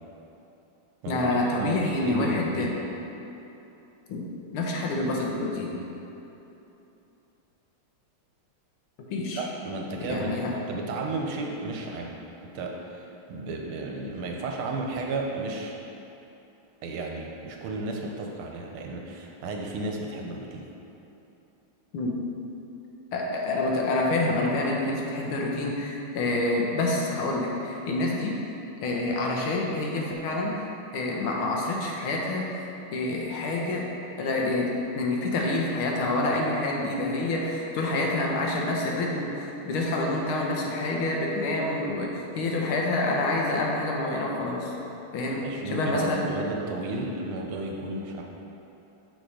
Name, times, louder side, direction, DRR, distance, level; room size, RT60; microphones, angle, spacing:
voice 1, 1.1-2.7 4.1-4.2 4.5-5.8 9.1-9.4 10.1-10.5 21.9-22.2 23.1-28.3 28.8-30.6 30.9-32.5 32.9-33.9 34.2-44.7 45.1-46.3, left 2 dB, 75° left, -1 dB, 1.7 m, -27 dB
voice 2, 1.6-2.8 9.3-12.1 12.4-15.7 16.8-20.7 45.4-48.2, right 2 dB, 80° right, 0 dB, 1.6 m, -33 dB
6.4 x 4.2 x 4.9 m, 3.0 s
omnidirectional pair, 2.4 m